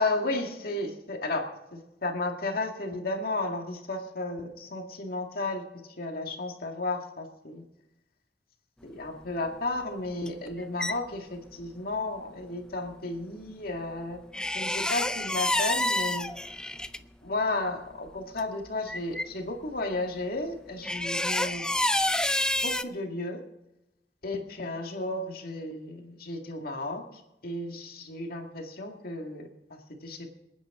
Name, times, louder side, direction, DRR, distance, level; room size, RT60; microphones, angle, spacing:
voice 1, 0.0-5.6 6.0-7.6 8.8-14.2 14.5-16.3 17.2-21.7 22.6-23.4 24.2-27.0 27.4-30.3, left 2 dB, 55° left, 2 dB, 2.1 m, -33 dB
sound 1, 10.3-10.9 14.3-17.0 18.1-18.2 18.4-18.5 18.9-19.3 20.8-22.8, left 1 dB, 5° left, 0.4 m, -28 dB
27.0 x 9.5 x 3.8 m, 0.91 s
head